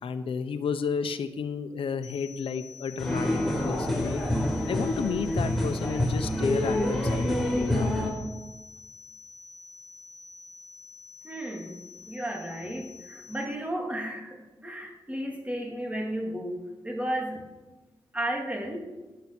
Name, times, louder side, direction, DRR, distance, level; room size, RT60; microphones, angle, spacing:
voice 1, 0.0-3.3 3.6-4.2 4.7-8.0, left 6 dB, 85° left, 10 dB, 0.9 m, -32 dB
sound 1, 2.0-13.5, left 6 dB, 40° left, 5.7 m, -48 dB
sound 2, 3.0-8.1, left 1 dB, ahead, 4.4 m, -27 dB
voice 2, 11.2-16.6 16.8-17.4 18.1-18.9, right 1 dB, 15° right, 1 dB, 2.8 m, -33 dB
18.0 x 9.7 x 6.2 m, 1.2 s
wide cardioid pair, 100°, 9 cm